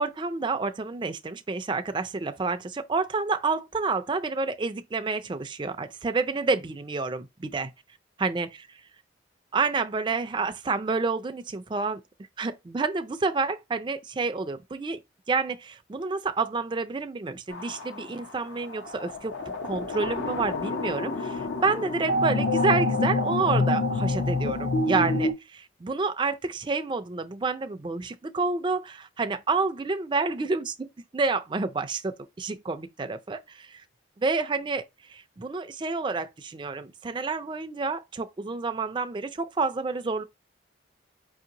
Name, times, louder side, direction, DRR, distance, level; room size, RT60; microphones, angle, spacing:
voice 1, 0.0-7.7 8.2-8.6 9.5-12.0 12.4-15.0 15.3-19.3 19.6-30.9 31.1-33.8 34.2-34.8 35.1-40.2, right 4 dB, 25° right, 0.3 m, -29 dB
sound 1, 17.5-25.3, left 2 dB, 75° left, 0.7 m, -27 dB
5.1 x 2.8 x 2.6 m
head